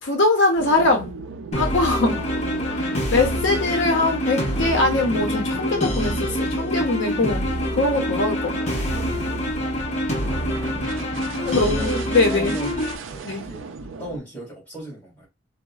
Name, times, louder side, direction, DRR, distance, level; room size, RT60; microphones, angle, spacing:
voice 1, 0.0-1.1 1.6-2.2 2.7-7.4 7.7-8.8 11.5-12.5 13.2-13.4, left 2 dB, 70° left, 0.6 m, -22 dB
sound 1, 0.6-14.2, right 4 dB, 85° right, 0.4 m, -37 dB
sound 2, 1.5-12.9, equal, 35° left, 0.7 m, -26 dB
voice 2, 1.9-2.3 10.3-12.0 12.3-13.7 14.0-15.3, right 2 dB, 10° left, 1.9 m, -37 dB
3.9 x 2.0 x 2.3 m
head